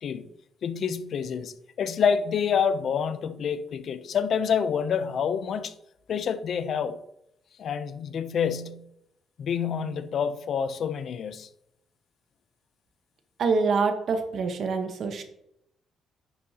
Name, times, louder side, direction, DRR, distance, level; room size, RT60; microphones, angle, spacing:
voice 1, 0.6-5.7 6.1-7.0 7.6-8.9 9.4-11.5, left 7 dB, 60° left, 0.6 m, -27 dB
voice 2, 13.4-15.2, right 4 dB, 60° right, 1.3 m, -25 dB
10.5 x 6.4 x 2.9 m
cardioid pair, 90°, 0 cm